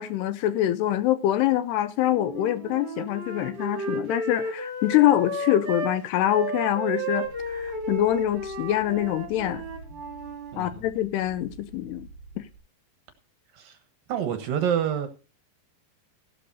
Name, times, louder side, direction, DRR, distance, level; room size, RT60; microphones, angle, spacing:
voice 1, 0.0-9.6 10.6-12.1, left 13 dB, 80° left, 2.6 m, -25 dB
Wind instrument woodwind instrument, 2.1-5.9 6.3-10.5, right 1 dB, 35° right, 2.8 m, -33 dB
sound 1, 7.2-12.6, right 3 dB, 55° left, 8.2 m, -48 dB
voice 2, 10.5-10.9 13.5-13.8 14.1-15.1, right 9 dB, 65° right, 2.5 m, -27 dB
15.5 x 12.0 x 2.7 m
omnidirectional pair, 5.1 m